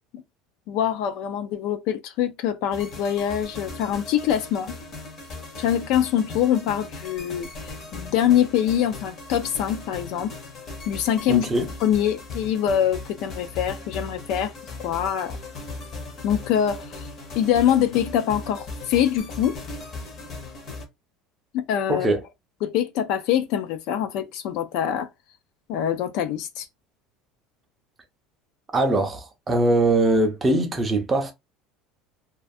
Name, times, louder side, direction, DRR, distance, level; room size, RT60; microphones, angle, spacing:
voice 1, 0.7-4.8 5.6-10.4 10.9-14.5 14.8-15.4 16.2-17.0 17.4-19.6 21.5-22.1 22.6-25.1 25.7-26.7, left 10 dB, 55° left, 0.4 m, -24 dB
sound 1, 2.7-20.9, left 3 dB, 30° left, 0.7 m, -38 dB
voice 2, 11.3-11.7 21.9-22.2 28.7-31.3, right 2 dB, 15° right, 0.5 m, -21 dB
2.4 x 2.3 x 2.6 m
cardioid pair, 170°, 0 cm